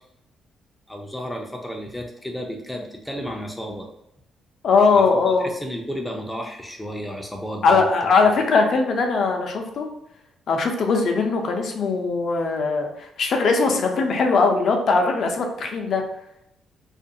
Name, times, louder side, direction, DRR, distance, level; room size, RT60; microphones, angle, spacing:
voice 1, 0.9-3.9 4.9-7.9, equal, 5° left, 1 dB, 0.4 m, -32 dB
voice 2, 4.6-5.5 7.6-9.9 10.5-16.0, left 4 dB, 60° left, 3 dB, 0.5 m, -20 dB
2.4 x 2.2 x 2.7 m, 0.80 s
cardioid pair, 90°, 0 cm